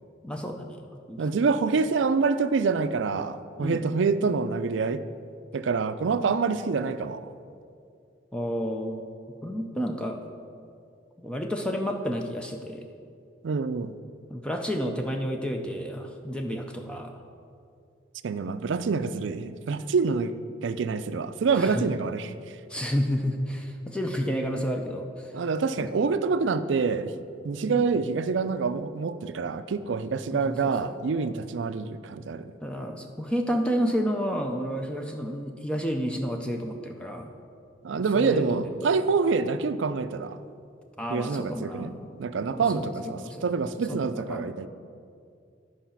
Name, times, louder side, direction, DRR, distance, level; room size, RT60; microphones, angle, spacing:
voice 1, 0.2-1.2 3.6-3.8 8.3-9.1 9.4-10.2 11.2-12.8 14.3-17.1 21.5-21.9 22.7-25.4 25.8-25.9 27.7-27.8 30.3-30.9 32.6-37.3 37.9-38.7 41.0-42.0 42.6-43.5 43.9-44.5, equal, 5° left, 3 dB, 0.5 m, -31 dB
voice 2, 1.2-5.0 5.5-7.3 13.4-13.9 18.2-20.3 20.6-22.3 25.3-27.1 27.4-32.5 37.8-40.4 41.1-44.7, right 4 dB, 80° right, 12 dB, 0.4 m, -26 dB
11.5 x 4.9 x 5.8 m, 2.4 s
head